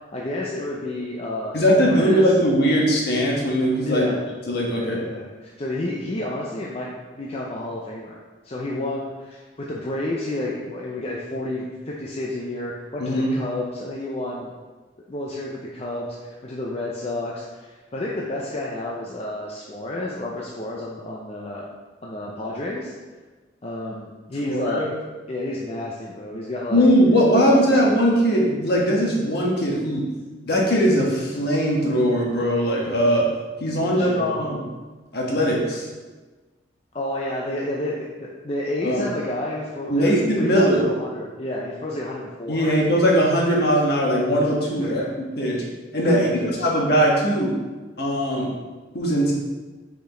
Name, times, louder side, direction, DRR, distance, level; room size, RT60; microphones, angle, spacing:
voice 1, 0.1-2.3 3.8-4.2 4.7-8.1 8.4-14.5 15.1-21.6 22.0-22.9 23.6-24.9 25.3-26.9 27.6-27.8 33.8-34.5 36.9-42.7 44.8-45.1 46.1-46.7, left 1 dB, 35° left, -3 dB, 0.6 m, -30 dB
voice 2, 1.5-4.1 4.5-5.0 13.0-13.3 24.4-24.9 26.7-30.1 30.5-33.3 33.6-34.6 35.1-35.9 38.8-39.0 39.9-40.8 42.5-45.0 45.4-45.6 45.9-46.3 46.6-47.6 48.0-48.5 48.9-49.3, equal, 55° left, -3 dB, 1.3 m, -20 dB
5.1 x 5.0 x 3.8 m, 1.3 s
head